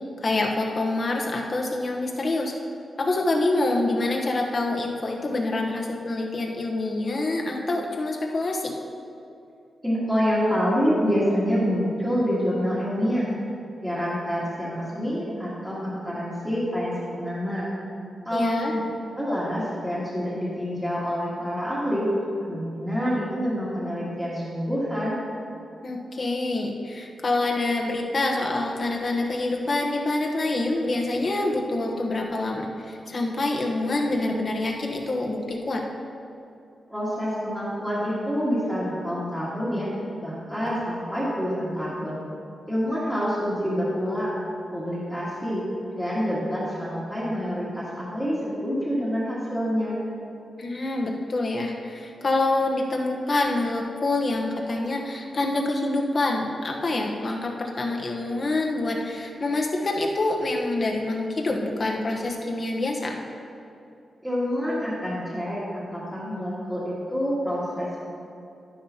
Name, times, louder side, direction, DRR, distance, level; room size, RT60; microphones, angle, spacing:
voice 1, 0.2-2.5 3.0-8.7 18.3-18.7 25.8-35.8 50.6-63.2, left 2 dB, 40° left, 0 dB, 1.1 m, -26 dB
voice 2, 9.8-13.3 13.8-17.7 18.3-18.8 19.1-22.1 22.5-25.2 36.9-39.9 40.2-42.2 42.7-44.4 44.7-45.6 45.9-50.0 64.2-68.0, equal, 5° right, -9 dB, 1.7 m, -27 dB
11.5 x 10.5 x 2.9 m, 2.6 s
wide cardioid pair, 155°, 0 cm